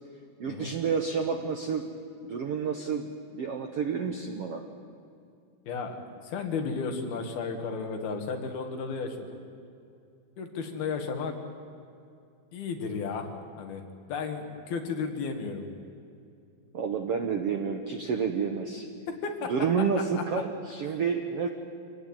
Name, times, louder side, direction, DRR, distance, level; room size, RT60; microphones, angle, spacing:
voice 1, 0.4-1.9 2.2-4.6 16.7-18.9 19.5-21.5, right 6 dB, 70° right, 5 dB, 1.4 m, -29 dB
voice 2, 5.7-9.4 10.4-11.4 12.5-13.3 13.6-15.7 19.2-19.5 20.2-20.4, left 5 dB, 75° left, 4 dB, 4.0 m, -34 dB
25.5 x 18.5 x 9.1 m, 2.5 s
omnidirectional pair, 4.4 m